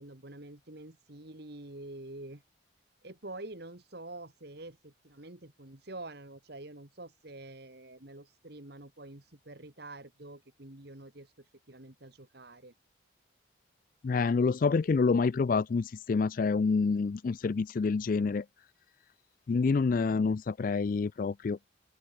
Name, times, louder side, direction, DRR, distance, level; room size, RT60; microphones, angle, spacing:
voice 1, 0.0-2.4 3.0-11.3 11.7-12.7, right 2 dB, 55° right, 2.1 m, -47 dB
voice 2, 14.0-18.4 19.5-21.6, left 4 dB, 45° left, 0.3 m, -27 dB
open air
head